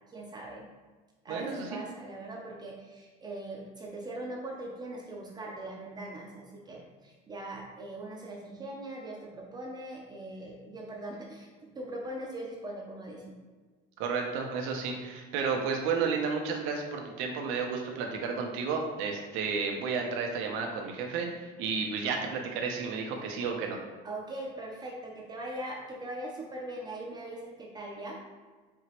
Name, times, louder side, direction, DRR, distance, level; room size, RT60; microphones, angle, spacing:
voice 1, 0.1-0.7 1.2-13.4 24.0-28.2, right 1 dB, 20° right, -2 dB, 0.5 m, -41 dB
voice 2, 1.3-1.8 14.0-23.8, right 5 dB, 90° right, 2 dB, 0.7 m, -32 dB
4.8 x 2.9 x 3.0 m, 1.4 s
cardioid pair, 165°, 20 cm